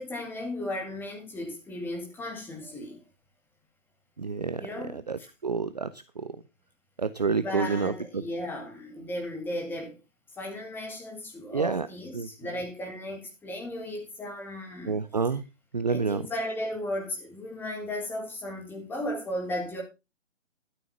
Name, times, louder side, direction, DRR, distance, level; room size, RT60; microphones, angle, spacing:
voice 1, 0.0-3.0 4.6-5.3 7.2-10.0 10.4-15.0 15.9-19.8, left 1 dB, 5° left, 2.3 m, -35 dB
voice 2, 4.2-4.7 5.1-5.9 6.2-6.3 7.0-8.2 11.5-11.9 12.1-12.3 14.9-15.4 15.7-16.2, right 5 dB, 35° right, 0.6 m, -28 dB
12.5 x 7.0 x 5.9 m
figure-of-eight pair, 145°, 39 cm